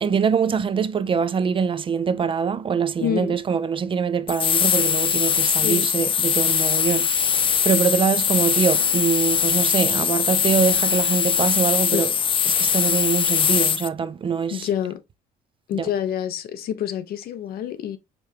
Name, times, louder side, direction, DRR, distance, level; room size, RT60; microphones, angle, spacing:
voice 1, 0.0-12.1 12.5-14.7 15.8-15.9, right 6 dB, 30° right, 0.4 m, -24 dB
voice 2, 3.0-3.4 5.6-5.9 11.9-12.2 14.5-15.0 15.7-18.0, left 10 dB, 65° left, 0.8 m, -27 dB
sound 1, 4.3-13.9, left 7 dB, 30° left, 0.4 m, -21 dB
5.1 x 3.5 x 2.8 m
cardioid pair, 110°, 17 cm